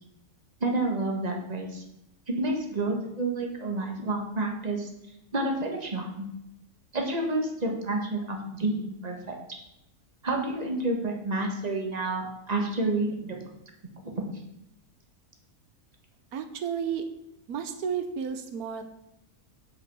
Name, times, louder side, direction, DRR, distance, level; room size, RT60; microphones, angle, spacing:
voice 1, 0.6-1.8 2.3-4.9 5.3-6.3 6.9-9.3 10.2-13.4 14.0-14.1, right 2 dB, 30° right, 1 dB, 1.6 m, -29 dB
voice 2, 16.3-17.1 17.5-18.8, right 7 dB, 90° right, 8 dB, 1.3 m, -32 dB
8.0 x 5.7 x 7.0 m, 0.83 s
omnidirectional pair, 1.5 m